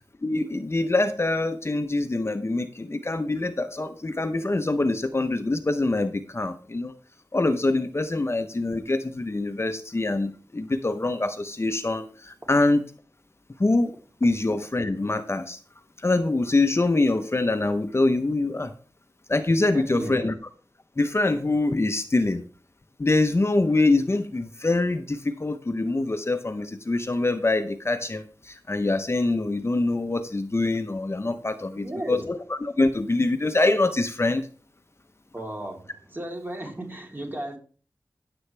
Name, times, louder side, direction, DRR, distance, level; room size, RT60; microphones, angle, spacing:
voice 1, 0.2-6.9 7.3-12.8 13.6-13.9 14.2-15.6 16.0-18.7 19.3-20.3 21.0-22.4 23.0-34.5, left 2 dB, 35° left, 0.9 m, -24 dB
voice 2, 19.7-20.1 31.8-32.3 35.3-37.6, right 1 dB, 30° right, 3.5 m, -35 dB
14.5 x 8.0 x 3.4 m
wide cardioid pair, 60°, 7 cm